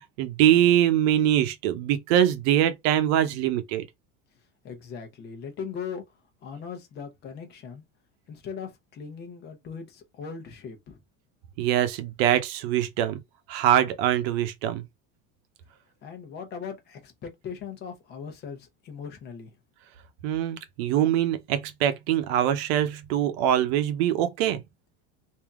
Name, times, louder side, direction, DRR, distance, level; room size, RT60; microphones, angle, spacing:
voice 1, 0.0-3.9 11.6-13.2 13.5-14.8 20.2-24.6, right 11 dB, 70° right, 0.8 m, -23 dB
voice 2, 4.6-6.0 6.4-7.8 8.3-11.0 16.0-19.5, left 6 dB, 30° left, 0.9 m, -39 dB
3.5 x 2.8 x 3.5 m
cardioid pair, 175°, 33 cm